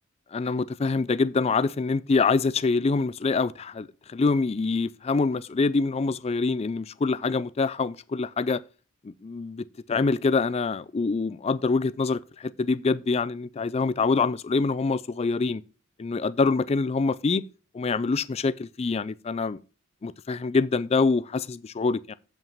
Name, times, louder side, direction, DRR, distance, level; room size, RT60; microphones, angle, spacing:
voice 1, 0.3-8.6 9.0-15.6 16.0-17.4 17.7-19.6 20.0-22.1, left 4 dB, 30° left, 0.3 m, -25 dB
7.3 x 5.7 x 5.4 m
head